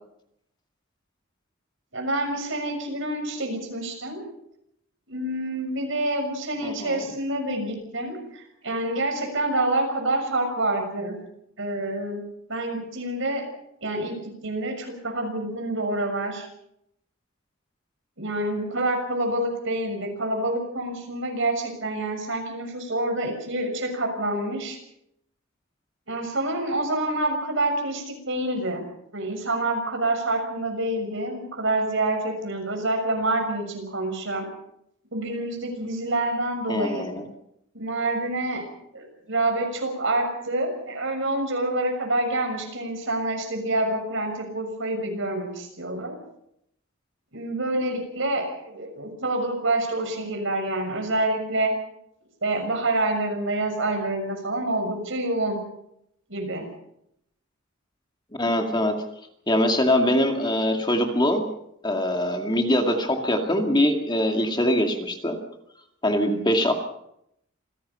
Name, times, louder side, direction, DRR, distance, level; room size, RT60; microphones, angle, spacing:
voice 1, 1.9-4.2 5.1-11.2 11.6-12.2 12.5-13.4 13.8-16.5 18.2-24.8 26.1-28.8 29.1-34.5 35.1-37.1 37.7-38.6 38.9-46.2 47.3-51.7 52.4-55.6 56.3-56.7, right 2 dB, 65° right, 4 dB, 6.5 m, -27 dB
voice 2, 6.6-7.1 36.7-37.2 58.4-59.0 59.5-61.5 61.8-65.4 66.0-66.7, left 1 dB, 20° left, 3 dB, 2.2 m, -23 dB
27.0 x 17.0 x 5.6 m, 0.77 s
head